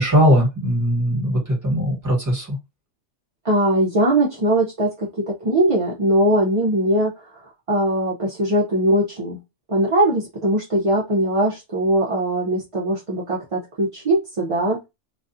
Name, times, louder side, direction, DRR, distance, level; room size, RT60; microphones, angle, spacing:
voice 1, 0.0-2.6, equal, 15° right, -2 dB, 1.1 m, -19 dB
voice 2, 3.4-7.1 7.7-9.4 9.7-14.8, right 1 dB, 40° right, -4 dB, 0.4 m, -20 dB
2.4 x 2.3 x 2.5 m, 0.23 s
omnidirectional pair, 1.4 m